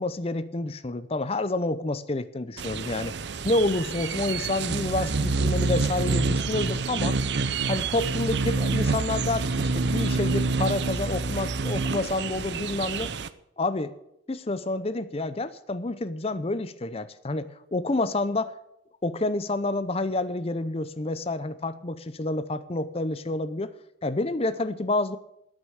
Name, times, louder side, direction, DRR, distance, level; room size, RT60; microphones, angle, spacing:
voice 1, 0.0-3.1 3.4-7.2 7.7-13.1 13.6-14.0 14.3-18.5 19.0-23.7 24.0-25.2, left 2 dB, 30° left, 13 dB, 0.6 m, -28 dB
sound 1, 2.6-13.3, right 3 dB, 60° right, 0.6 m, -27 dB
9.6 x 8.9 x 9.0 m, 0.80 s
head